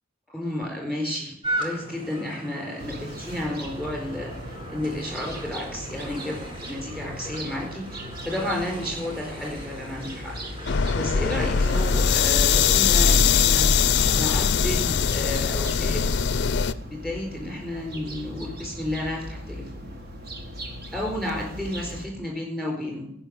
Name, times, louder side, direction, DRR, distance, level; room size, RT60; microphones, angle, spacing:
voice 1, 0.3-13.7 14.1-16.5 16.8-19.9 20.9-23.1, left 1 dB, 5° right, -1 dB, 4.4 m, -32 dB
sound 1, 1.4-14.7, right 1 dB, 25° right, 2.0 m, -38 dB
sound 2, 2.8-22.0, equal, 50° right, 1.7 m, -39 dB
sound 3, 10.7-16.7, left 6 dB, 55° left, 0.5 m, -21 dB
14.5 x 5.7 x 8.0 m, 0.74 s
head